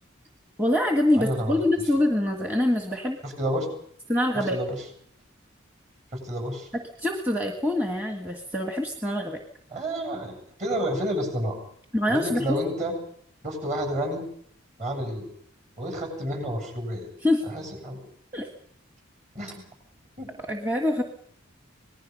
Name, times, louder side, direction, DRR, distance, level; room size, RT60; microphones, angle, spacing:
voice 1, 0.6-3.2 4.1-4.6 6.7-9.4 11.9-12.6 17.2-17.4 18.3-18.5 20.5-21.0, left 1 dB, 10° right, 3 dB, 1.5 m, -25 dB
voice 2, 1.2-1.6 3.2-3.7 4.3-4.8 6.1-6.7 9.7-11.6 12.1-12.9 13.4-14.2 14.8-15.3 15.8-17.1 17.5-18.0 19.3-19.6 20.2-20.3, equal, 35° right, 5 dB, 7.9 m, -30 dB
26.0 x 19.5 x 5.4 m, 0.64 s
head